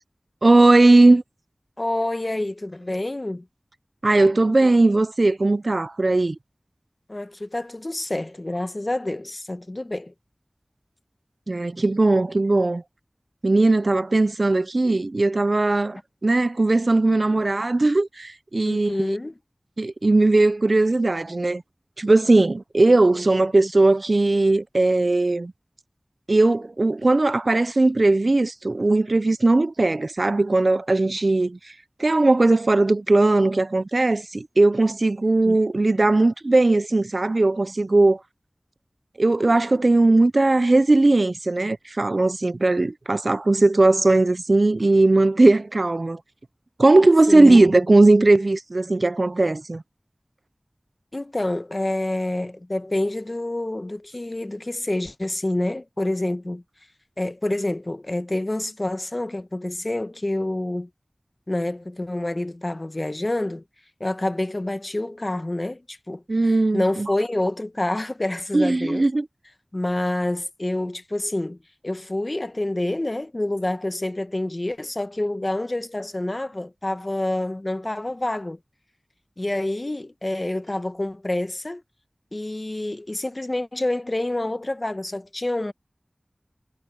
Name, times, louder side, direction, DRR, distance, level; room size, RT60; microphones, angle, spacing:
voice 1, 0.4-1.2 4.0-6.4 11.5-12.8 13.4-19.0 19.8-21.6 22.0-25.5 26.3-31.7 32.0-38.2 39.2-46.2 46.8-49.8 66.3-67.1 68.5-69.3, right 2 dB, 65° right, 0.5 m, -18 dB
voice 2, 1.8-3.5 7.1-10.1 18.6-19.3 35.4-35.6 47.3-47.8 51.1-56.6 57.2-60.9 61.5-63.6 64.0-66.2 66.7-69.0 69.7-71.6 71.8-78.6 79.4-81.8 82.3-85.7, left 1 dB, 40° left, 1.2 m, -27 dB
wide cardioid pair, 45°, 0 cm